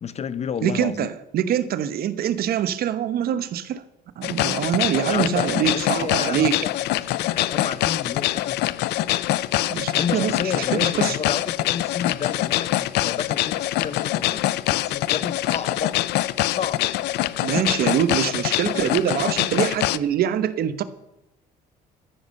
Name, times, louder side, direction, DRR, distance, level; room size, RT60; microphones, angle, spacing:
voice 1, 0.0-1.1 5.1-8.7 9.9-16.0 16.5-16.9, left 7 dB, 40° left, 17 dB, 0.8 m, -31 dB
voice 2, 0.6-3.8 4.2-6.6 9.7-11.2 17.4-20.8, right 9 dB, 65° right, 13 dB, 1.2 m, -24 dB
sound 1, 4.2-20.0, left 15 dB, 80° left, 0.6 m, -24 dB
13.5 x 10.5 x 6.6 m, 0.86 s
cardioid pair, 110°, 17 cm